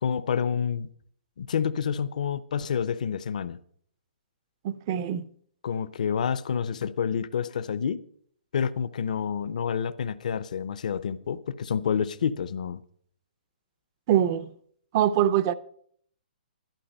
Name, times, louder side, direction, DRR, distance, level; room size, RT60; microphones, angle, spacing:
voice 1, 0.0-0.9 1.4-3.6 5.6-8.0 8.5-12.8, left 7 dB, 50° left, 0.6 m, -28 dB
voice 2, 4.6-5.2 14.1-14.5 14.9-15.5, right 11 dB, 20° right, 0.4 m, -23 dB
12.0 x 11.5 x 5.3 m
hypercardioid pair, 175°, 5 cm